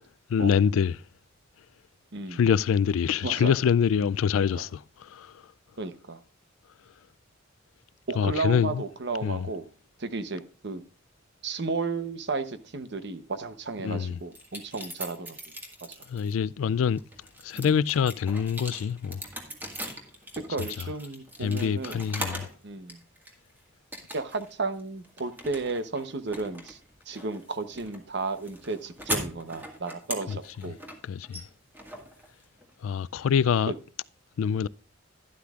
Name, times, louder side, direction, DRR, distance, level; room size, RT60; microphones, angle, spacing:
voice 1, 0.3-1.0 2.3-5.3 8.2-8.8 9.2-9.5 13.8-14.2 16.1-17.0 17.4-19.2 21.4-22.5 30.3-30.4 31.0-31.4 32.8-33.7 34.4-34.7, left 7 dB, 80° left, 0.3 m, -25 dB
voice 2, 5.8-6.2 8.1-9.7 10.0-10.8 11.4-15.4 15.8-16.0 17.5-17.7 20.4-22.0 22.6-23.0 24.1-26.8 27.1-30.8, right 3 dB, 60° right, 0.8 m, -33 dB
sound 1, 14.3-16.3 16.8-22.6 22.9-23.5 23.9-24.5 24.8-32.7, equal, 10° right, 1.7 m, -39 dB
11.5 x 11.0 x 2.4 m
head